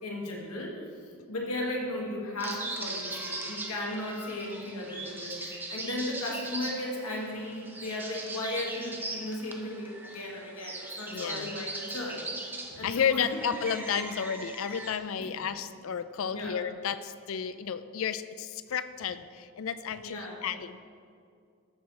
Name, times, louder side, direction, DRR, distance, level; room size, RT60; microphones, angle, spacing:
voice 1, 0.0-12.2 12.8-13.3 15.2-15.5 16.3-16.6 20.0-20.4, left 1 dB, 90° left, -2 dB, 1.7 m, -36 dB
sound 1, 2.4-15.0, right 2 dB, 10° right, 0.6 m, -40 dB
voice 2, 11.1-11.6 12.8-20.8, left 7 dB, 65° left, 13 dB, 0.4 m, -32 dB
13.5 x 4.8 x 4.1 m, 2.3 s
head